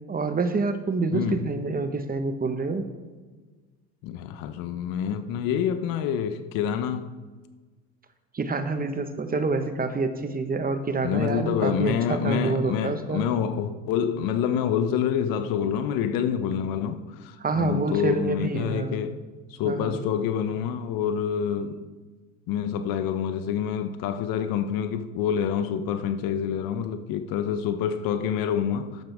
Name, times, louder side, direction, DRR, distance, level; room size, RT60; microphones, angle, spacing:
voice 1, 0.1-2.9 8.3-13.2 17.4-19.0 19.6-20.0, right 3 dB, 20° right, 1.3 m, -27 dB
voice 2, 1.1-1.5 4.0-7.1 11.0-19.2 19.5-21.9 22.5-29.0, left 8 dB, 55° left, 1.0 m, -27 dB
15.0 x 12.0 x 3.6 m
hypercardioid pair, 80°, 41 cm